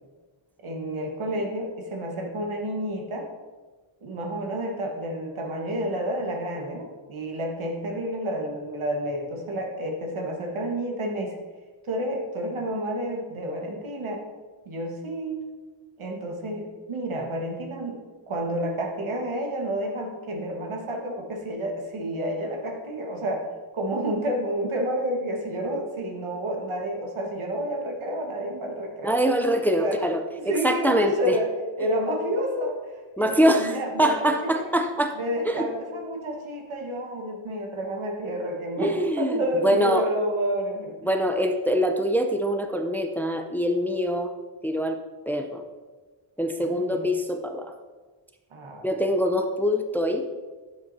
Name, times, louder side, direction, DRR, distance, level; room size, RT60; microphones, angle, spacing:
voice 1, 0.6-3.3 4.0-11.4 11.9-14.2 14.6-15.4 16.0-23.4 23.7-29.2 29.8-30.0 30.3-31.5 31.8-34.7 35.2-41.0 46.6-47.1 48.5-48.9, right 1 dB, 80° right, 1 dB, 1.5 m, -30 dB
voice 2, 29.0-30.2 30.5-31.4 33.2-35.2 35.5-35.7 38.8-40.1 41.0-44.3 44.6-45.0 45.3-45.6 46.4-47.7 48.8-50.3, equal, 5° left, 5 dB, 0.4 m, -24 dB
10.5 x 7.2 x 2.7 m, 1.3 s
wide cardioid pair, 120°, 49 cm